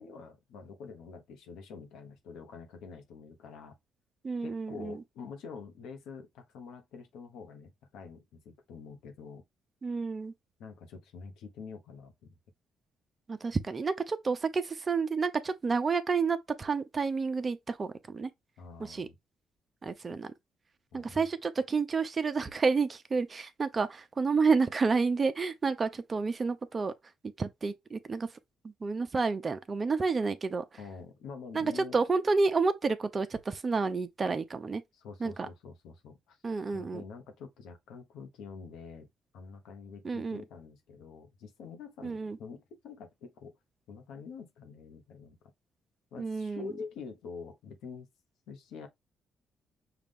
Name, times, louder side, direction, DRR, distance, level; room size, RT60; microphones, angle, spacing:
voice 1, 0.0-3.8 4.4-9.4 10.6-12.3 18.6-19.2 20.9-21.3 30.8-32.0 34.9-36.4 36.7-39.1 39.3-43.6 43.9-45.4 46.1-48.1 48.5-48.9, left 5 dB, 85° left, 1.1 m, -46 dB
voice 2, 4.2-5.0 9.8-10.3 13.3-18.3 18.8-19.1 19.8-20.3 20.9-26.9 27.4-28.3 28.8-30.6 31.5-34.8 35.2-35.5 36.4-37.0 40.0-40.4 42.0-42.4 46.2-46.7, right 4 dB, 35° right, 0.7 m, -30 dB
5.8 x 2.5 x 3.6 m
cardioid pair, 90°, 0 cm